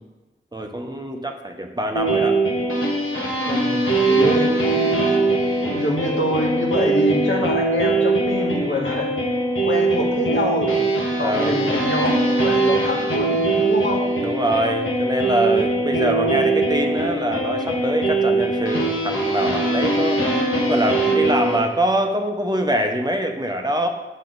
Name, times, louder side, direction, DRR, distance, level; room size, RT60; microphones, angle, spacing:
voice 1, 0.5-2.4 4.1-4.4 11.2-11.7 14.2-20.2 20.7-23.9, right 1 dB, 20° right, 3 dB, 0.8 m, -24 dB
sound 1, 1.9-21.6, right 2 dB, 90° left, 1.3 m, -21 dB
voice 2, 3.4-5.0 5.6-9.1 9.6-14.0, left 1 dB, 70° left, -2 dB, 1.6 m, -25 dB
6.8 x 6.4 x 3.9 m, 1.1 s
wide cardioid pair, 55°, 21 cm